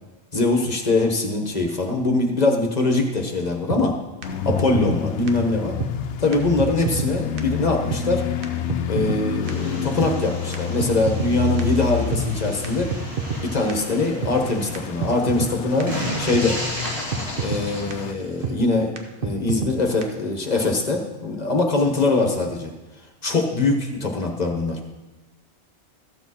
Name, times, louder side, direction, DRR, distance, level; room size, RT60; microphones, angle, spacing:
voice 1, 0.3-3.9 4.4-5.8 6.2-8.2 8.9-12.9 13.4-16.6 17.4-22.7 23.2-24.8, left 2 dB, 40° left, 2 dB, 1.3 m, -22 dB
sound 1, 3.7-3.8 4.2-4.3 4.5-5.0 5.3-5.4 5.8-5.9 6.3-6.4 6.6-7.1 7.4-7.5 7.9-8.0 8.4-8.5 8.7-9.2 9.5-9.6 10.0-10.1 10.5-11.3 11.6-11.7 12.1-12.2 12.6-12.7 12.9-13.4 13.7-13.8 14.2-14.3 14.7-14.8 15.0-15.5 15.8-15.9 16.3-16.4 16.9-17.0 17.1-17.6 17.9-18.0 18.4-18.6 19.0-19.1 19.2-19.7 20.0-20.1, right 5 dB, 55° right, 1.0 m, -27 dB
sound 2, 4.2-18.1, left 8 dB, 85° left, 0.9 m, -29 dB
sound 3, 9.4-18.5, equal, 30° right, 2.8 m, -34 dB
14.0 x 7.2 x 4.2 m, 1.1 s
omnidirectional pair, 1.1 m